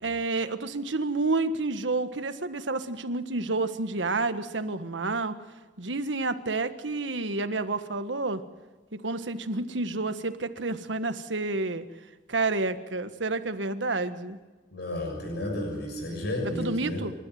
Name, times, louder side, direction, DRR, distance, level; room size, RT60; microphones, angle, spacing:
voice 1, 0.0-5.4 5.8-8.4 8.9-11.8 12.3-14.4 16.6-17.1, right 3 dB, 85° right, 10 dB, 1.5 m, -29 dB
voice 2, 14.7-17.0, left 1 dB, 65° left, 1 dB, 6.6 m, -32 dB
28.5 x 13.5 x 9.4 m, 1.2 s
head